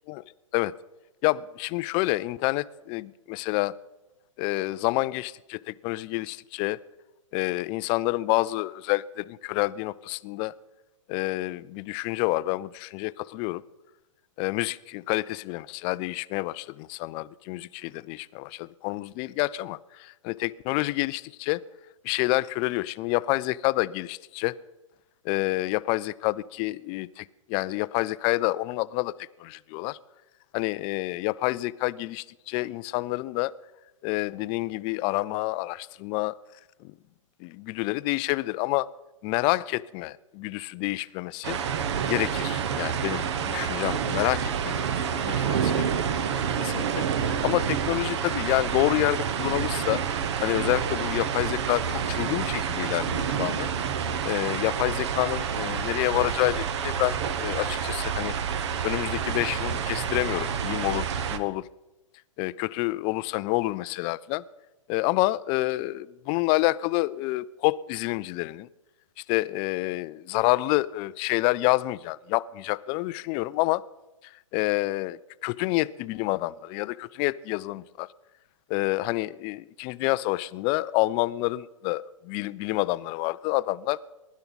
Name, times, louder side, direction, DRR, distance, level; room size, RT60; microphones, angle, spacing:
voice 1, 1.2-3.7 4.4-6.8 7.3-10.5 11.1-13.6 14.4-21.6 22.0-24.6 25.2-29.1 29.4-30.0 30.5-33.5 34.0-36.3 36.8-36.9 37.4-38.9 39.2-41.6 42.0-44.8 45.1-45.9 46.6-50.0 50.4-53.7 54.2-58.3 58.8-61.7 62.4-64.4 64.9-68.7 69.3-73.8 74.5-78.1 78.7-84.0, left 20 dB, 30° left, 17 dB, 0.4 m, -28 dB
sound 1, 41.4-61.4, right 7 dB, 55° right, 1.2 m, -28 dB
22.5 x 11.5 x 4.1 m, 1.0 s
hypercardioid pair, 115°, 17 cm